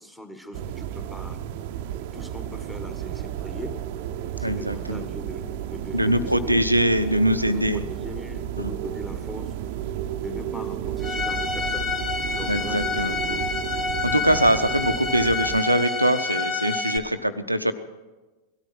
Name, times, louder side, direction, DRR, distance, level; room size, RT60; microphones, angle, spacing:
voice 1, 0.0-1.4 2.1-3.8 4.4-6.6 7.5-9.5 10.2-11.9 12.4-13.4, left 1 dB, 5° left, 8 dB, 1.6 m, -40 dB
sound 1, 0.5-15.6, right 11 dB, 50° right, 0.7 m, -33 dB
voice 2, 4.4-5.0 5.9-7.8 8.6-8.7 12.5-13.2 14.0-17.7, equal, 90° right, 10 dB, 0.7 m, -22 dB
Bowed string instrument, 11.0-17.0, left 3 dB, 30° left, 2.0 m, -28 dB
18.0 x 13.0 x 6.0 m, 1.2 s
figure-of-eight pair, 90°, 0 cm